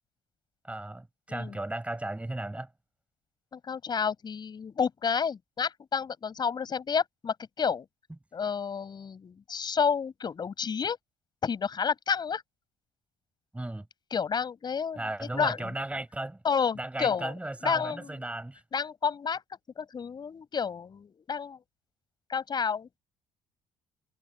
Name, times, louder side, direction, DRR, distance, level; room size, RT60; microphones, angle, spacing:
voice 1, 0.6-2.7 13.5-13.9 15.0-16.4 16.8-18.6, right 1 dB, 10° right, 5.1 m, -35 dB
voice 2, 3.5-7.9 8.3-11.0 11.4-12.4 14.1-15.7 16.4-17.3 17.6-18.2 18.7-19.4 19.8-21.6 22.3-23.0, left 6 dB, 40° left, 4.8 m, -30 dB
hypercardioid pair, 55°, 11 cm